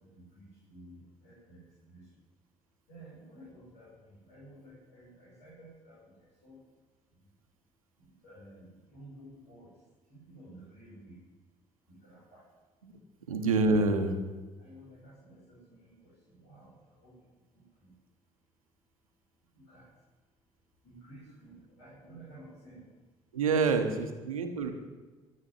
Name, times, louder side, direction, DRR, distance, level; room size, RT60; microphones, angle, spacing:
voice 1, 0.0-2.2 2.9-6.6 7.1-7.3 8.0-11.2 11.9-12.5 14.6-17.9 19.5-19.9 20.8-22.9 24.3-24.7, right 1 dB, 75° left, -8 dB, 6.0 m, -54 dB
voice 2, 13.3-14.2 23.3-24.7, right 3 dB, 90° right, 6 dB, 1.2 m, -27 dB
13.5 x 8.7 x 9.8 m, 1.2 s
hypercardioid pair, 50°, 17 cm